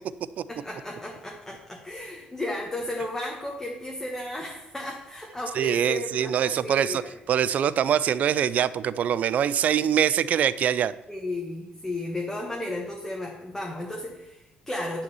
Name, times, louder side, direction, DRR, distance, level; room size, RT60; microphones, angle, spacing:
voice 1, 0.5-7.2 11.1-15.0, left 1 dB, 10° left, -1 dB, 1.3 m, -34 dB
voice 2, 5.5-7.0 7.3-10.9, right 9 dB, 55° right, 16 dB, 0.4 m, -23 dB
9.9 x 3.9 x 6.9 m, 0.93 s
cardioid pair, 100°, 3 cm